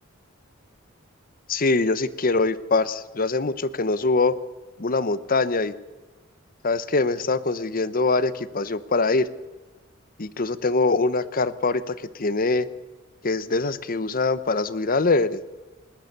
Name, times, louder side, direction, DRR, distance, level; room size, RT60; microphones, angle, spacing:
voice 1, 1.5-4.3 4.8-5.7 6.6-9.3 10.2-12.7 13.2-15.4, left 3 dB, 45° left, 16 dB, 0.9 m, -23 dB
20.5 x 19.0 x 6.7 m, 1.3 s
head